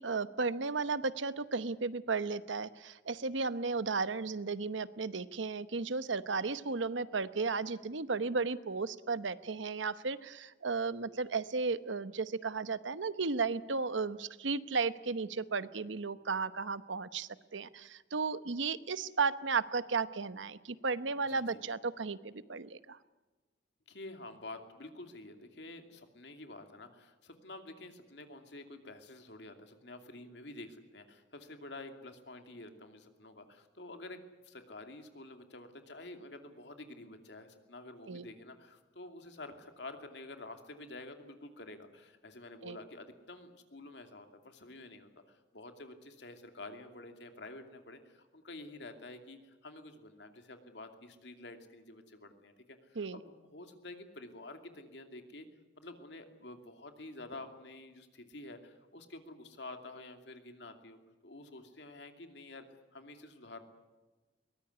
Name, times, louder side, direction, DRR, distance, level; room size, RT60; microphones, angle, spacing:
voice 1, 0.0-23.0 38.1-38.2 42.6-42.8 53.0-53.2, right 4 dB, 85° right, 14 dB, 0.9 m, -34 dB
voice 2, 21.3-21.6 23.9-52.5 52.8-55.5 55.8-62.6 62.9-63.6, left 2 dB, 65° left, 6 dB, 2.7 m, -49 dB
22.5 x 19.0 x 9.7 m, 1.2 s
head